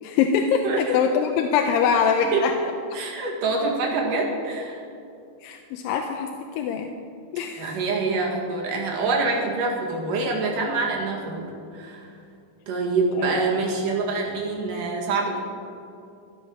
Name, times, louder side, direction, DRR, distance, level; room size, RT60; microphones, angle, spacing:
voice 1, 0.0-2.5 2.9-3.0 5.4-6.3 6.6-6.9 7.3-7.8 13.2-13.4, left 6 dB, 90° left, 4 dB, 2.4 m, -23 dB
voice 2, 0.6-1.0 2.2-2.4 2.9-4.8 7.6-12.1 12.7-15.4, right 3 dB, 70° right, -1 dB, 3.4 m, -26 dB
14.5 x 8.8 x 6.2 m, 2.5 s
omnidirectional pair, 4.0 m